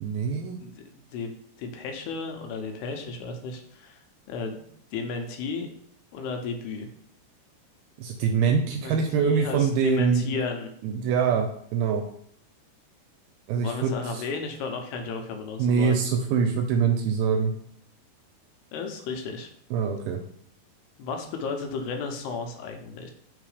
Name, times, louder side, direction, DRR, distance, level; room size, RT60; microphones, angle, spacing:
voice 1, 0.0-0.6 8.0-10.2 10.8-12.0 13.5-14.2 15.6-17.5 19.7-20.2, right 6 dB, 80° right, 4 dB, 2.2 m, -24 dB
voice 2, 0.6-1.3 1.6-4.0 4.3-4.7 4.9-5.7 6.1-6.9 8.8-10.7 13.6-16.0 18.7-19.5 21.0-23.1, left 4 dB, 85° left, 4 dB, 2.8 m, -34 dB
5.7 x 3.8 x 4.8 m, 0.65 s
omnidirectional pair, 4.7 m